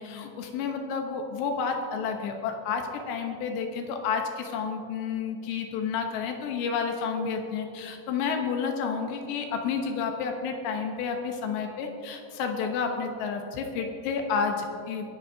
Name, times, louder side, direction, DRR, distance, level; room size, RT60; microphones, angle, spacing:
voice 1, 0.0-15.1, left 5 dB, 75° left, 4 dB, 3.0 m, -30 dB
25.0 x 10.5 x 2.7 m, 2.5 s
omnidirectional pair, 5.2 m